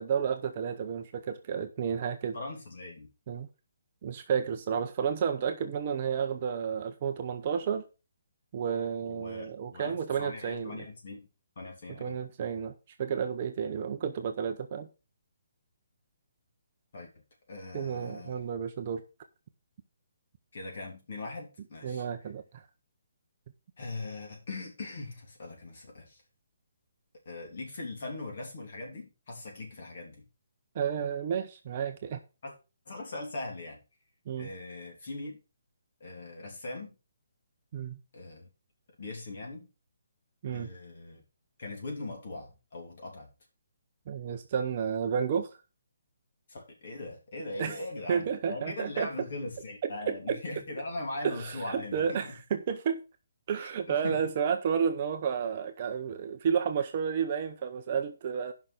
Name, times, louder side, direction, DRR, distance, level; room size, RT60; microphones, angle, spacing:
voice 1, 0.0-2.4 3.3-3.5 4.0-7.8 8.5-10.8 12.0-12.7 13.0-14.9 17.7-19.0 21.8-22.6 30.7-32.2 34.3-34.5 37.7-38.0 40.4-40.7 44.1-45.5 47.6-47.8 48.1-49.1 49.8-50.4 51.2-53.0 53.5-58.5, right 7 dB, 25° right, 0.7 m, -31 dB
voice 2, 2.3-3.1 9.1-11.3 11.5-12.2 16.9-17.1 17.5-18.4 20.5-22.1 23.8-26.2 27.2-30.2 32.4-32.5 32.8-33.8 34.4-35.4 36.0-36.9 38.1-38.5 39.0-39.7 40.5-41.2 41.6-43.3 46.5-52.4 53.6-54.3, left 2 dB, 40° left, 3.1 m, -40 dB
8.9 x 5.8 x 6.2 m
hypercardioid pair, 180°, 0 cm